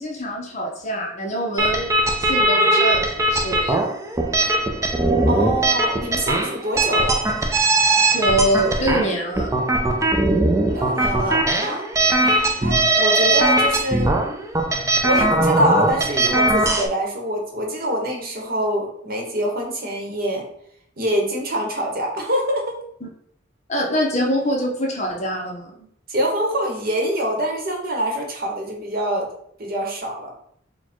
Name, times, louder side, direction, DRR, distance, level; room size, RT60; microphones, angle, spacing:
voice 1, 0.0-3.9 8.1-9.5 23.0-23.1 23.7-25.9, equal, 40° left, 0 dB, 0.9 m, -24 dB
sound 1, 1.6-16.9, right 2 dB, 15° right, 0.4 m, -20 dB
voice 2, 5.3-7.2 10.7-11.9 12.2-14.1 15.0-20.4 21.0-22.8 26.1-29.3 29.6-30.3, right 1 dB, 50° right, 0 dB, 1.1 m, -25 dB
4.2 x 2.3 x 4.3 m, 0.66 s
head